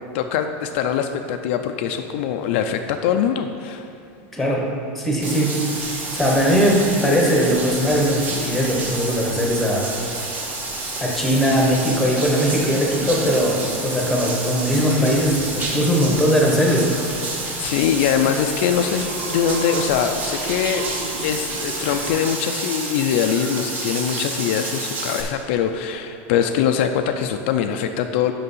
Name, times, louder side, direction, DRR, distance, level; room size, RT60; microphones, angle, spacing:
voice 1, 0.1-3.9 17.6-20.8 21.2-28.3, left 8 dB, 60° left, 6 dB, 0.4 m, -22 dB
voice 2, 4.3-4.7 4.9-5.6 6.1-9.9 11.0-16.9, equal, ahead, -1 dB, 1.0 m, -19 dB
Bathtub (filling or washing), 5.2-25.2, right 2 dB, 25° right, 1.1 m, -29 dB
sound 1, 5.7-22.1, right 1 dB, 90° right, 1.6 m, -39 dB
6.7 x 5.8 x 5.4 m, 2.5 s
supercardioid pair, 165°, 7 cm